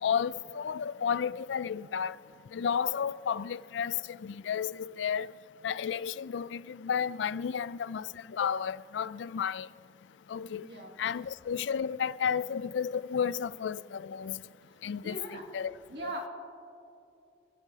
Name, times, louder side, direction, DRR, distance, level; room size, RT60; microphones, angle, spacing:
voice 1, 0.0-2.2 2.5-5.3 5.6-9.7 10.3-10.7 11.0-14.4 14.8-15.7, left 7 dB, 85° left, 0.4 m, -32 dB
voice 2, 10.6-11.0 15.0-15.5 15.9-16.3, right 1 dB, 65° right, 2.3 m, -39 dB
27.0 x 13.0 x 2.8 m
head